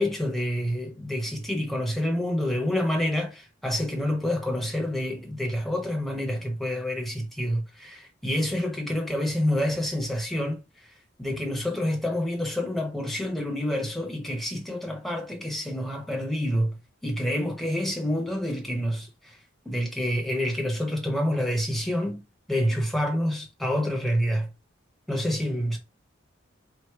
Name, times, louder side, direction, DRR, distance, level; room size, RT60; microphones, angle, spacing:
voice 1, 0.0-16.8 17.0-19.4 19.6-22.2 22.5-24.5 25.1-25.8, equal, ahead, 0.8 m, -28 dB
4.6 x 2.1 x 4.4 m
head